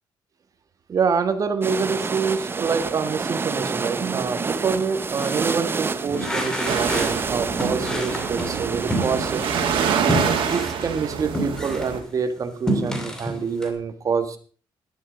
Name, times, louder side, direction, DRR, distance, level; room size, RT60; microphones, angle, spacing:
voice 1, 0.9-9.4 10.1-14.4, right 5 dB, 40° right, 8 dB, 1.7 m, -26 dB
sound 1, 1.6-10.0, right 4 dB, 25° right, 0.7 m, -28 dB
sound 2, 5.1-5.4 6.1-7.2 7.6-9.6 10.1-12.0 12.4-13.7, equal, 5° left, 2.6 m, -28 dB
sound 3, 6.7-12.0, right 7 dB, 80° right, 2.4 m, -26 dB
11.5 x 11.0 x 5.2 m, 0.41 s
cardioid pair, 120°, 9 cm